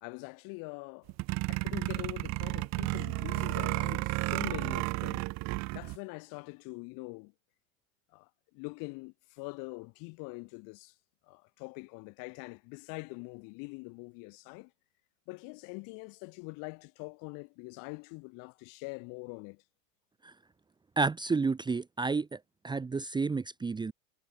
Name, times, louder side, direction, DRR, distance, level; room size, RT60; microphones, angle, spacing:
voice 1, 0.0-1.1 1.5-5.2 5.7-7.3 8.1-10.9 11.3-14.7 15.3-19.6, left 31 dB, 50° left, 2.9 m, -44 dB
sound 1, 1.1-6.0, right 24 dB, 40° right, 0.9 m, -32 dB
voice 2, 21.0-22.4 22.6-23.9, right 4 dB, 10° right, 1.0 m, -30 dB
hypercardioid pair, 95°, 42 cm